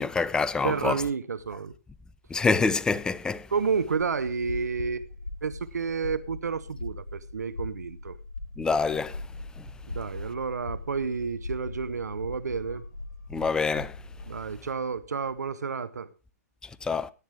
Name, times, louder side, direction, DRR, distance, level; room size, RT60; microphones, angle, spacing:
voice 1, 0.0-0.9 2.3-3.5 8.6-9.2 13.3-13.9 16.8-17.1, left 4 dB, 10° left, 0.6 m, -26 dB
voice 2, 0.6-1.7 3.5-5.1 5.4-8.2 9.9-12.8 14.3-16.1, right 5 dB, 80° right, 0.8 m, -30 dB
sound 1, 4.0-14.5, left 2 dB, 80° left, 1.9 m, -40 dB
17.5 x 9.3 x 3.4 m
hypercardioid pair, 125°, 9 cm